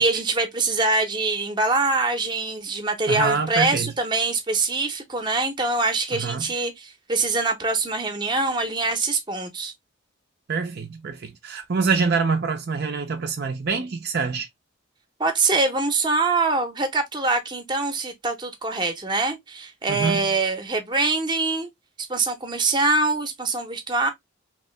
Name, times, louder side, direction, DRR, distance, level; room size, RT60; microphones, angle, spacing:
voice 1, 0.0-9.7 15.2-21.7 22.1-24.1, right 3 dB, 25° right, 0.7 m, -24 dB
voice 2, 3.1-3.9 6.1-6.4 10.5-14.5 19.9-20.2, right 5 dB, 55° right, 0.5 m, -25 dB
3.1 x 2.7 x 3.1 m
head